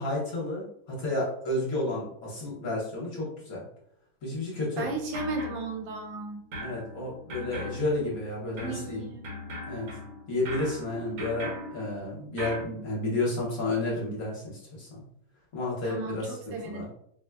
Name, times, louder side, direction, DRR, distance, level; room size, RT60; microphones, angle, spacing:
voice 1, 0.0-3.6 4.2-4.9 6.6-9.1 9.7-9.9 10.3-14.9 15.5-16.9, left 2 dB, 55° left, -4 dB, 1.1 m, -31 dB
sound 1, 4.8-6.2 6.5-12.7, left 1 dB, 60° right, 1.0 m, -40 dB
voice 2, 4.8-6.5 8.6-9.3 15.8-16.9, right 3 dB, 80° right, 1 dB, 1.4 m, -35 dB
4.3 x 2.1 x 2.2 m, 0.70 s
omnidirectional pair, 2.1 m